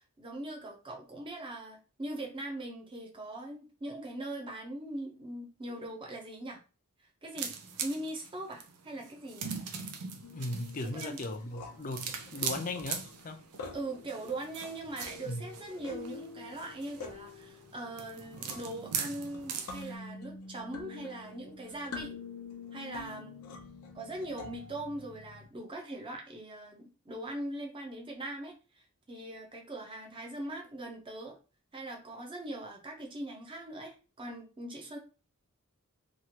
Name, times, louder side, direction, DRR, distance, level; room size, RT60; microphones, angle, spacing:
voice 1, 0.0-6.6 7.0-7.5 7.8-9.5 10.9-11.2 13.7-22.1 22.7-23.5 23.9-31.4 31.7-35.0, right 1 dB, 25° right, 0.7 m, -41 dB
sound 1, 7.4-19.9, right 6 dB, 85° right, 0.5 m, -41 dB
sound 2, 10.2-25.5, left 3 dB, 75° left, 0.6 m, -47 dB
voice 2, 10.3-13.5 15.2-15.4, left 2 dB, 35° left, 0.5 m, -37 dB
3.0 x 2.4 x 2.8 m
head